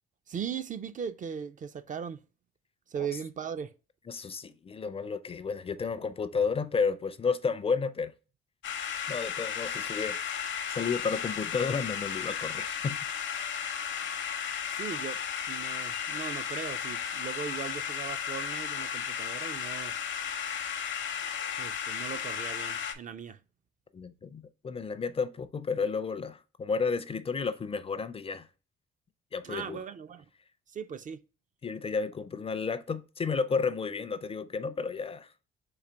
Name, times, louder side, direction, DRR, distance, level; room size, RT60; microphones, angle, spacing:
voice 1, 0.3-2.2 2.9-3.7 14.7-19.9 21.6-23.4 29.4-30.2 30.7-31.2, right 7 dB, 40° right, 0.4 m, -38 dB
voice 2, 4.1-8.1 9.1-10.2 10.7-13.0 23.9-28.5 29.3-29.8 31.6-35.3, left 5 dB, 30° left, 0.4 m, -32 dB
sound 1, 8.6-22.9, left 8 dB, 65° left, 0.7 m, -34 dB
3.9 x 2.8 x 4.3 m
cardioid pair, 90°, 20 cm